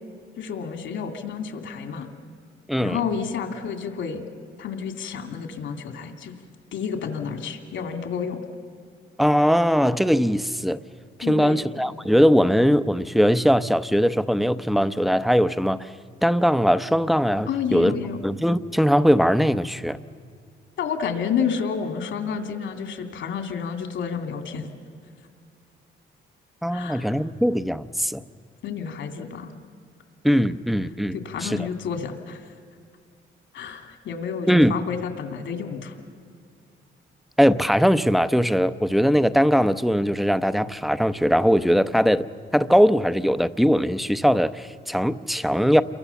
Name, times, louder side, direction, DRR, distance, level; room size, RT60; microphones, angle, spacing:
voice 1, 0.4-2.1 2.8-4.2 4.6-6.3 6.7-8.4 11.2-11.7 17.5-18.2 20.8-24.7 26.7-27.1 28.6-29.5 31.1-32.4 33.5-35.9, left 6 dB, 75° left, 5 dB, 2.7 m, -30 dB
voice 2, 2.7-3.0 9.2-10.8 11.2-15.9 16.2-17.9 18.2-20.0 26.6-28.2 30.2-31.7 34.5-34.7 37.4-42.3 42.5-45.8, equal, ahead, 12 dB, 0.7 m, -20 dB
28.5 x 23.0 x 7.1 m, 2.3 s
cardioid pair, 90°, 20 cm